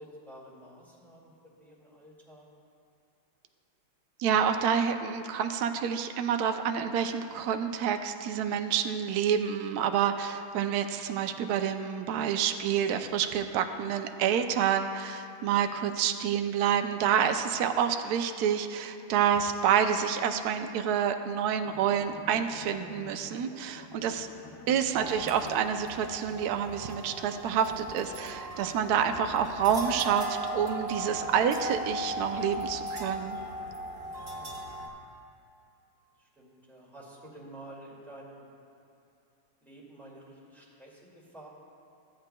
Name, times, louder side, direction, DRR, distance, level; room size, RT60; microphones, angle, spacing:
voice 1, 0.0-1.3 1.6-2.5 34.4-34.5 36.2-38.4 39.6-41.5, right 1 dB, ahead, -7 dB, 1.9 m, -50 dB
voice 2, 4.2-24.3 24.7-33.4, right 8 dB, 75° right, 7 dB, 0.9 m, -28 dB
Bowed string instrument, 21.6-26.0, left 7 dB, 75° left, 0.9 m, -48 dB
sound 1, 24.9-34.9, right 1 dB, 35° right, 1.4 m, -38 dB
15.5 x 9.2 x 2.2 m, 2.6 s
omnidirectional pair, 2.1 m